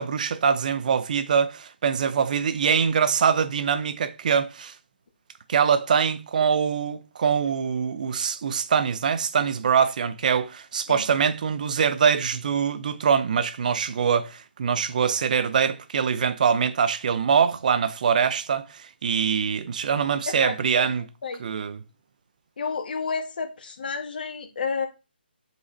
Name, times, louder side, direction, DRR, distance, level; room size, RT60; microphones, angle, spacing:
voice 1, 0.0-4.7 5.5-21.0 21.4-21.8, right 7 dB, 50° right, 0.8 m, -23 dB
voice 2, 22.6-24.9, left 5 dB, 60° left, 1.9 m, -30 dB
8.5 x 4.8 x 4.1 m
figure-of-eight pair, 150°, 6 cm